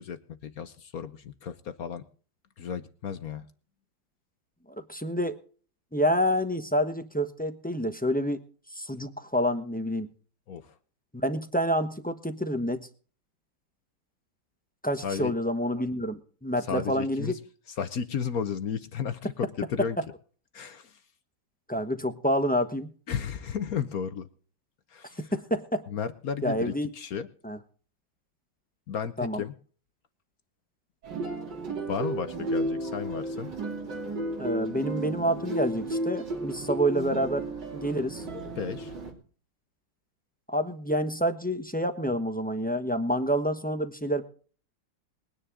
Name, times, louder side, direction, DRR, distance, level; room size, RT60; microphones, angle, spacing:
voice 1, 0.0-2.0 2.6-3.4 10.5-10.7 15.0-15.3 16.7-17.4 17.8-20.0 20.5-21.0 23.1-24.3 24.9-25.3 25.9-27.3 28.9-29.5 31.9-33.5 38.6-38.9, left 7 dB, 55° left, 11 dB, 1.2 m, -33 dB
voice 2, 4.9-5.4 5.9-8.4 8.7-10.1 11.1-12.9 14.8-17.3 21.7-22.9 25.2-25.8 26.4-26.9 27.4-27.6 29.2-29.4 34.4-37.4 37.7-38.2 40.5-44.2, equal, 5° left, 8 dB, 0.7 m, -28 dB
sound 1, 31.0-39.1, right 2 dB, 65° right, 3.4 m, -33 dB
21.5 x 9.9 x 3.7 m, 0.42 s
omnidirectional pair, 2.1 m